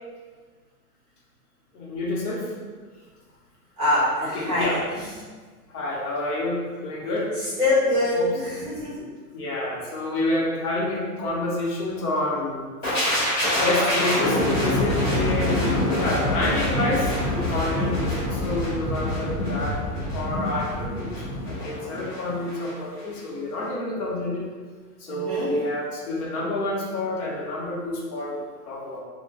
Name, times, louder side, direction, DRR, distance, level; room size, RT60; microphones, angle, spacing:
voice 1, 1.7-2.5 4.2-4.8 5.7-7.3 8.1-8.3 9.3-13.1 13.6-19.8 20.1-24.5 25.0-29.0, left 2 dB, 75° left, -3 dB, 1.0 m, -28 dB
voice 2, 3.8-5.1 7.3-9.0 25.1-25.5, left 1 dB, 15° right, -10 dB, 0.6 m, -24 dB
sound 1, 12.8-22.7 23.0-23.2, left 1 dB, 30° left, 1.4 m, -25 dB
3.8 x 2.2 x 2.3 m, 1.5 s
supercardioid pair, 160°, 46 cm